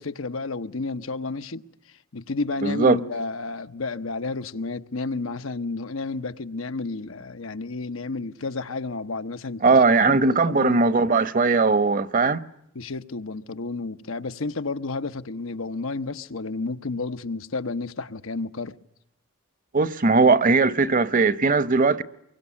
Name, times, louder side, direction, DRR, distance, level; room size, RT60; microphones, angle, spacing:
voice 1, 0.0-1.6 2.1-9.8 10.1-10.8 12.7-18.7, left 3 dB, 85° left, 1.0 m, -31 dB
voice 2, 2.6-3.0 9.6-12.4 19.7-22.0, right 4 dB, 45° right, 0.9 m, -19 dB
24.5 x 23.0 x 9.7 m
head